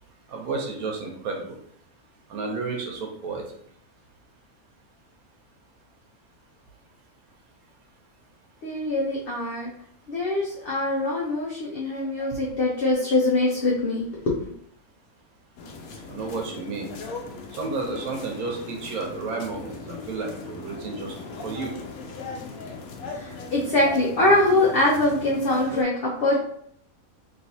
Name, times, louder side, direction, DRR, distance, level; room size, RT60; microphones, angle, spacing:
voice 1, 0.3-1.6 2.3-3.4 16.1-16.9 17.5-21.2 21.4-21.7, right 4 dB, 85° right, 2 dB, 1.2 m, -31 dB
voice 2, 8.6-9.7 10.1-14.5 23.1-26.4, left 2 dB, 55° left, -4 dB, 0.7 m, -23 dB
sound 1, 15.6-25.8, left 4 dB, 80° left, 1.1 m, -38 dB
3.2 x 2.9 x 2.7 m, 0.67 s
omnidirectional pair, 1.5 m